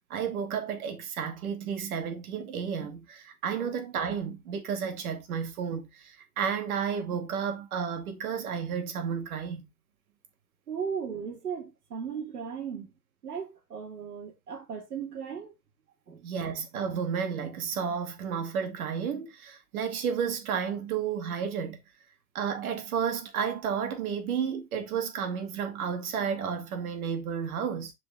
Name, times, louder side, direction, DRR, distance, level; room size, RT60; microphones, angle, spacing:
voice 1, 0.1-9.7 16.2-21.8 22.3-27.9, right 7 dB, 70° right, 2.5 m, -32 dB
voice 2, 10.7-12.9 13.2-15.5 16.1-16.3, right 7 dB, 85° right, 2.5 m, -36 dB
7.2 x 5.3 x 3.4 m
hypercardioid pair, 105°, 45 cm